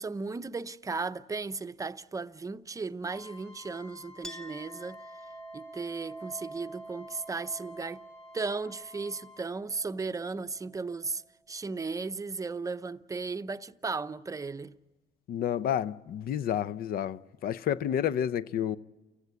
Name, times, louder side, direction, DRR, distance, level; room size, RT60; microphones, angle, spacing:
voice 1, 0.0-5.0 5.5-8.0 8.3-11.2 11.5-14.8, right 4 dB, 20° right, 0.7 m, -35 dB
Trumpet, 3.1-9.5, left 5 dB, 40° left, 4.5 m, -53 dB
Chink clink, 4.2-11.3, right 2 dB, 5° left, 1.3 m, -48 dB
voice 2, 15.3-18.8, left 10 dB, 60° left, 0.7 m, -30 dB
29.5 x 16.5 x 9.5 m
cardioid pair, 110°, 17 cm